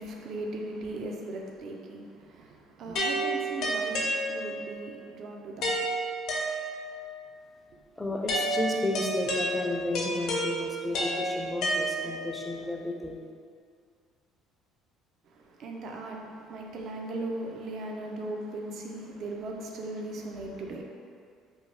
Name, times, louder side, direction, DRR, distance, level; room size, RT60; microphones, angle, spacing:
voice 1, 0.0-6.0 15.3-20.8, right 2 dB, 60° right, 1 dB, 0.4 m, -38 dB
sound 1, 3.0-4.7 5.6-7.0 8.3-12.4, right 1 dB, 65° left, 0.6 m, -30 dB
voice 2, 8.0-13.2, left 2 dB, 15° left, 0 dB, 0.4 m, -32 dB
2.7 x 2.1 x 3.2 m, 2.2 s
supercardioid pair, 80°, 0 cm